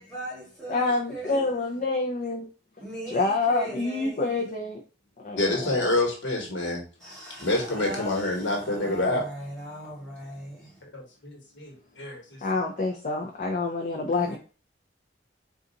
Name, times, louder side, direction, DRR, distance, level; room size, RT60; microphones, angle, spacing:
voice 1, 0.0-1.4 2.8-4.4 7.0-10.7 14.1-14.4, right 1 dB, 5° left, 1.9 m, -39 dB
voice 2, 0.7-2.5 3.1-4.8 5.2-5.8 12.4-14.4, left 3 dB, 40° left, 0.5 m, -27 dB
voice 3, 5.4-6.8 7.4-9.3 10.9-12.2, left 2 dB, 80° left, 1.2 m, -27 dB
3.9 x 2.4 x 3.9 m
head